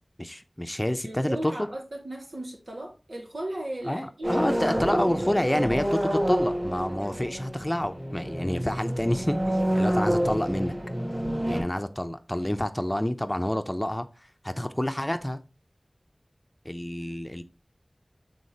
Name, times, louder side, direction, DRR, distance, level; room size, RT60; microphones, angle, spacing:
voice 1, 0.2-1.7 3.9-10.7 11.5-14.1 14.4-15.4 16.6-17.4, left 1 dB, 15° left, 0.7 m, -28 dB
voice 2, 1.0-4.5 5.0-5.3 6.9-7.2, right 1 dB, 85° right, 2.7 m, -37 dB
sound 1, 4.2-11.6, equal, 55° right, 3.7 m, -28 dB
8.4 x 4.0 x 4.1 m
wide cardioid pair, 50°, 0 cm